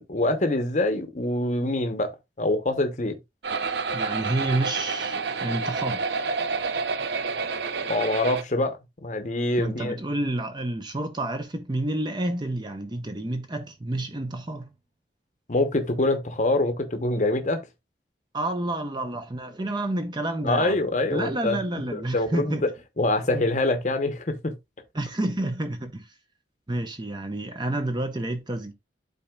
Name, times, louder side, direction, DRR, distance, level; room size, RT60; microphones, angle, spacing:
voice 1, 0.0-2.1 2.4-3.1 7.9-8.7 9.0-10.0 15.5-17.6 20.4-21.6 21.9-22.7 23.0-24.5, left 2 dB, 45° left, 0.9 m, -25 dB
sound 1, 3.4-8.4, right 4 dB, 75° right, 0.6 m, -29 dB
voice 2, 3.9-6.1 9.6-14.7 18.3-20.8 21.1-22.6 24.9-26.0 26.7-28.7, right 1 dB, 25° right, 0.7 m, -29 dB
12.0 x 4.2 x 2.3 m
head